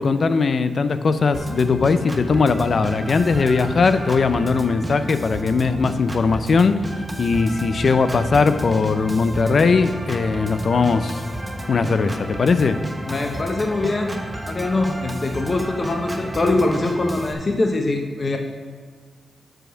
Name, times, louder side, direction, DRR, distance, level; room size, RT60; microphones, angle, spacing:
voice 1, 0.0-6.8 7.2-11.2 11.7-12.8, left 4 dB, 60° left, 11 dB, 0.5 m, -19 dB
Organ, 1.3-17.3, right 1 dB, 20° right, 1.1 m, -31 dB
voice 2, 13.0-18.4, left 2 dB, 45° left, 3 dB, 0.9 m, -23 dB
7.6 x 5.0 x 6.3 m, 1.5 s
cardioid pair, 50°, 0 cm